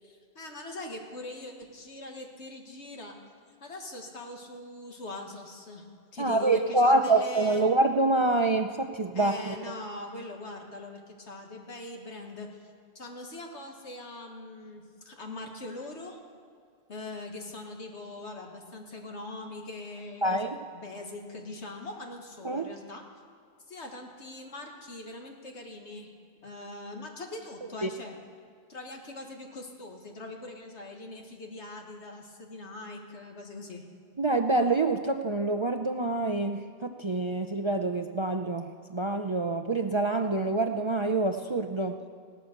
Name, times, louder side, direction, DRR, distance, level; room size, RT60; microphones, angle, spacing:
voice 1, 0.0-3.2 3.6-5.9 6.1-7.7 9.1-12.5 13.0-16.2 16.9-23.0 23.7-26.1 26.4-28.1 28.7-33.8, left 2 dB, 75° left, 2 dB, 2.0 m, -42 dB
voice 2, 6.2-9.6 20.2-20.6 22.4-22.6 27.8-27.9 34.2-42.0, right 2 dB, 35° right, 6 dB, 0.5 m, -26 dB
17.0 x 12.5 x 6.6 m, 2.1 s
omnidirectional pair, 1.2 m